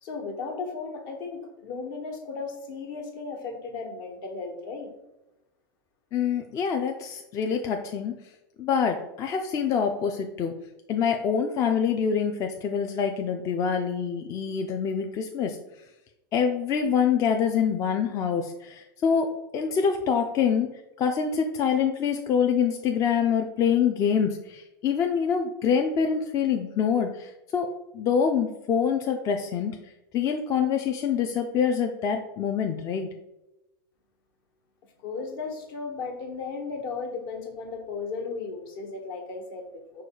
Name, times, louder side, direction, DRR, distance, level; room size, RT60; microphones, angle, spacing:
voice 1, 0.0-4.9 35.0-40.0, left 4 dB, 60° left, 2 dB, 1.2 m, -35 dB
voice 2, 6.1-8.1 8.6-10.5 10.9-15.6 16.3-20.7 21.0-27.7 27.9-29.8 30.1-33.1, left 7 dB, 25° left, 4 dB, 0.4 m, -25 dB
4.7 x 2.3 x 4.5 m, 0.96 s
supercardioid pair, 135°, 12 cm